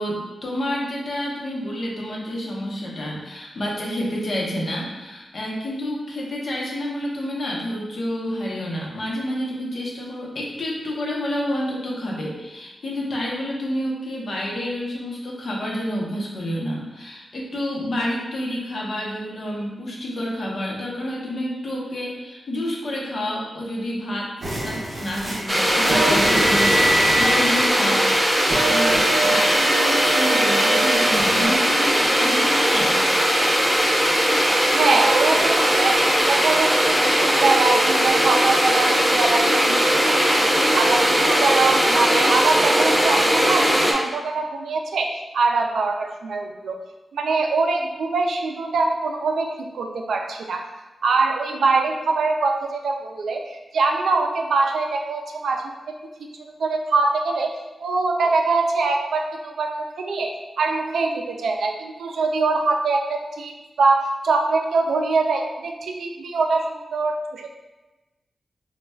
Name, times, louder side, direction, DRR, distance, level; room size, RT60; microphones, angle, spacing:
voice 1, 0.0-24.3 24.6-28.1 28.3-33.0, equal, 60° left, -3 dB, 0.8 m, -29 dB
sound 1, 24.4-31.5, right 1 dB, 55° right, 0.7 m, -24 dB
sound 2, 25.5-43.9, equal, 10° right, 0.4 m, -19 dB
voice 2, 34.7-40.4 40.7-45.1 45.3-46.8 47.1-49.5 49.7-50.6 51.0-55.7 56.6-57.5 57.8-60.3 60.6-67.5, right 3 dB, 90° right, 2 dB, 0.3 m, -23 dB
4.2 x 2.2 x 2.2 m, 1.1 s
wide cardioid pair, 105°, 0 cm